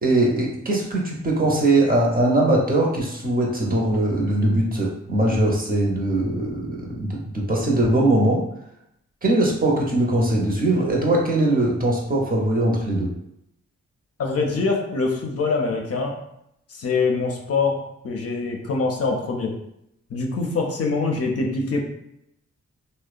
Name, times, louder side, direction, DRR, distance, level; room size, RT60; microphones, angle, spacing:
voice 1, 0.0-8.4 9.2-13.1, right 1 dB, 30° right, -2 dB, 0.7 m, -21 dB
voice 2, 14.2-16.2 16.7-17.8 18.0-19.5 20.1-21.8, left 4 dB, 55° left, 1 dB, 0.5 m, -24 dB
2.7 x 2.0 x 2.4 m, 0.80 s
cardioid pair, 55°, 29 cm